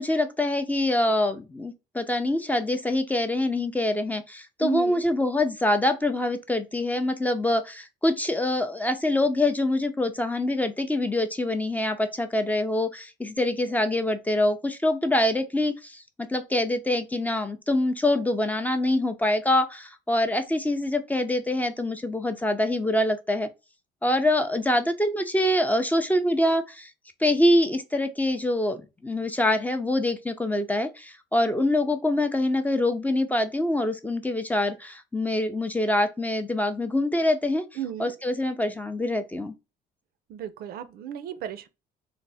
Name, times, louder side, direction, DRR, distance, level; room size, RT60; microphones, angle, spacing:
voice 1, 0.0-23.5 24.0-26.9 27.2-37.6 38.0-39.5, left 1 dB, 10° left, 0.4 m, -25 dB
voice 2, 4.6-5.0 37.8-38.1 40.3-41.7, right 11 dB, 65° right, 0.4 m, -34 dB
3.3 x 2.0 x 4.0 m
cardioid pair, 110°, 17 cm